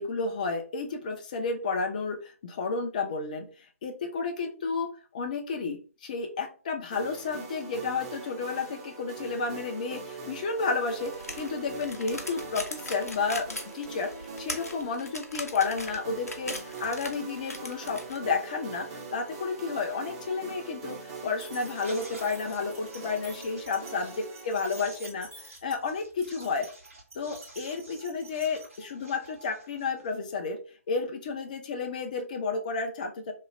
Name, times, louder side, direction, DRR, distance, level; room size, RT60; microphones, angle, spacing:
voice 1, 0.0-3.5 3.8-4.9 5.1-21.0 21.2-25.3 25.6-26.7 27.1-30.6 30.9-33.3, left 4 dB, 30° left, 4 dB, 0.5 m, -31 dB
sound 1, 6.9-25.5, right 4 dB, 25° right, 0.6 m, -42 dB
sound 2, 11.1-18.2, left 2 dB, 75° left, 0.7 m, -39 dB
sound 3, 11.3-11.4 11.6-11.7 11.9-15.1 15.9-16.0 16.2-16.3 16.6-16.7 18.6-18.7 19.0-19.1 19.3-30.3, right 2 dB, 65° right, 1.5 m, -50 dB
3.1 x 2.3 x 3.0 m, 0.37 s
figure-of-eight pair, 140°, 8 cm